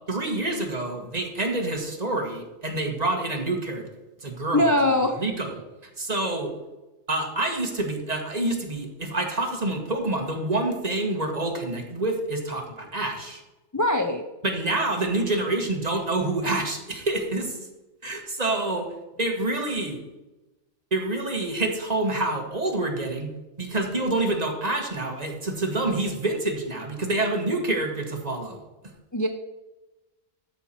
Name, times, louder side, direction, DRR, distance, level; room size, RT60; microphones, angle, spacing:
voice 1, 0.1-3.9 4.2-6.5 7.1-13.4 14.4-17.6 18.0-18.9 19.2-20.0 20.9-23.3 23.6-28.6, right 2 dB, 35° right, 2 dB, 1.6 m, -27 dB
voice 2, 4.5-5.2 13.7-14.2 29.1-29.3, left 1 dB, 20° left, 4 dB, 0.5 m, -21 dB
13.0 x 5.7 x 4.4 m, 1.1 s
omnidirectional pair, 1.3 m